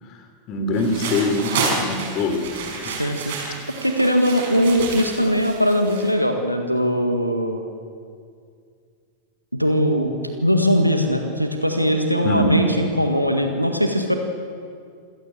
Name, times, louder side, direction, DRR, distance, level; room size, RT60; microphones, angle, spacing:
voice 1, 0.0-2.9 3.3-3.7 12.2-12.6, left 1 dB, 35° left, 7 dB, 3.2 m, -24 dB
sound 1, 0.7-6.1, right 4 dB, 55° right, 5.6 m, -30 dB
voice 2, 2.9-3.6 3.8-7.6 9.5-10.1 10.4-14.1, equal, 90° right, 4 dB, 1.9 m, -20 dB
27.0 x 17.0 x 8.0 m, 2.2 s
figure-of-eight pair, 90°, 0 cm